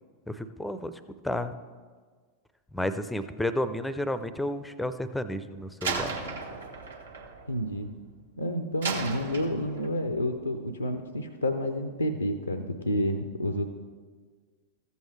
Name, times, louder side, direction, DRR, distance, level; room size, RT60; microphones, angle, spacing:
voice 1, 0.3-0.9 1.2-1.6 2.7-6.1, left 1 dB, 5° left, 12 dB, 0.5 m, -31 dB
Slam, 5.8-8.2 8.8-10.0, right 4 dB, 70° right, 1.1 m, -35 dB
voice 2, 7.5-7.9 8.4-13.7, equal, 85° left, 7 dB, 0.5 m, -29 dB
14.0 x 7.9 x 3.2 m, 1.5 s
figure-of-eight pair, 90°, 0 cm